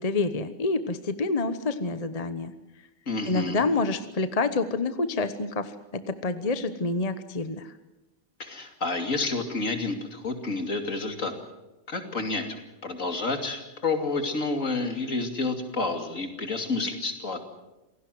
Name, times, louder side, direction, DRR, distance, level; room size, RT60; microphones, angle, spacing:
voice 1, 0.0-2.5 3.3-7.7, left 3 dB, 30° left, 11 dB, 1.0 m, -28 dB
voice 2, 3.1-3.6 8.4-11.3 11.9-17.4, left 3 dB, 65° left, 5 dB, 3.1 m, -29 dB
27.0 x 17.5 x 7.8 m, 1.0 s
omnidirectional pair, 1.5 m